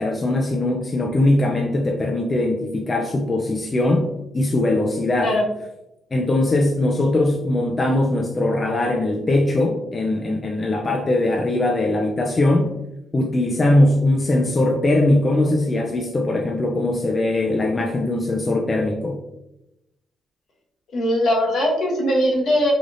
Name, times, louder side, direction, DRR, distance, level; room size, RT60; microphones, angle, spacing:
voice 1, 0.0-4.1 4.3-5.3 6.1-12.7 13.1-19.2, left 1 dB, 35° left, 1 dB, 0.4 m, -20 dB
voice 2, 20.9-22.7, equal, 70° left, -3 dB, 1.0 m, -20 dB
3.4 x 2.4 x 2.6 m, 0.88 s
cardioid pair, 70°, 0 cm